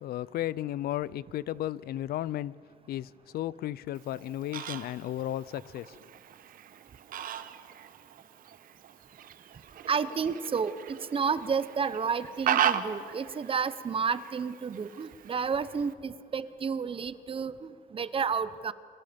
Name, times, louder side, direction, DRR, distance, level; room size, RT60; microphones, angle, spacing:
voice 1, 0.0-2.5 2.9-6.0, left 13 dB, 65° left, 0.6 m, -34 dB
Fowl, 4.0-15.9, right 10 dB, 55° right, 1.2 m, -37 dB
voice 2, 9.9-18.7, right 6 dB, 30° right, 0.9 m, -31 dB
29.5 x 24.0 x 5.3 m
cardioid pair, 110°, 17 cm